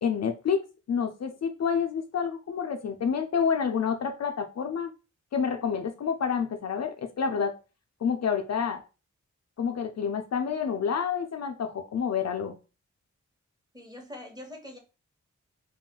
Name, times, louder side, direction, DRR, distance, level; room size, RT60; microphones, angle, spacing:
voice 1, 0.0-0.6 0.9-4.9 5.3-7.5 8.0-8.8 9.6-12.6, left 6 dB, 60° left, 5 dB, 0.5 m, -28 dB
voice 2, 13.7-14.8, left 1 dB, 15° right, 2 dB, 1.1 m, -43 dB
2.4 x 2.1 x 3.7 m, 0.31 s
cardioid pair, 50°, 30 cm